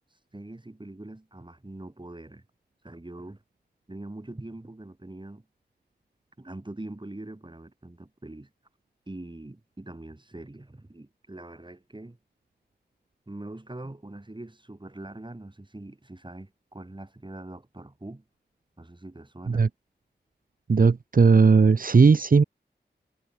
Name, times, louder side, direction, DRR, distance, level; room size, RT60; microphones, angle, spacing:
voice 1, 0.3-2.4 2.8-3.4 3.9-5.4 6.4-8.5 9.1-12.2 13.3-18.2 18.8-19.7, right 2 dB, 25° right, 4.4 m, -42 dB
voice 2, 20.7-22.4, right 4 dB, 50° right, 0.9 m, -17 dB
cardioid pair, 45°, 18 cm